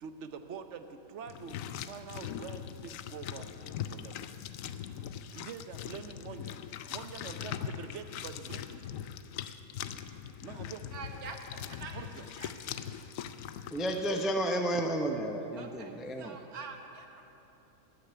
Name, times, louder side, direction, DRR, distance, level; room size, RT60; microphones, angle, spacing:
voice 1, 0.0-1.6 1.8-3.5 3.9-4.2 5.3-6.6 6.9-8.9 10.4-10.9 11.9-12.3, right 6 dB, 60° right, 9 dB, 0.9 m, -45 dB
sound 1, 1.3-14.2, left 9 dB, 70° left, 0.9 m, -41 dB
voice 2, 10.9-13.8 15.6-17.2, right 4 dB, 90° right, 4 dB, 1.7 m, -47 dB
voice 3, 13.7-16.4, right 1 dB, ahead, 4 dB, 0.4 m, -32 dB
15.0 x 6.6 x 9.5 m, 2.9 s
omnidirectional pair, 1.5 m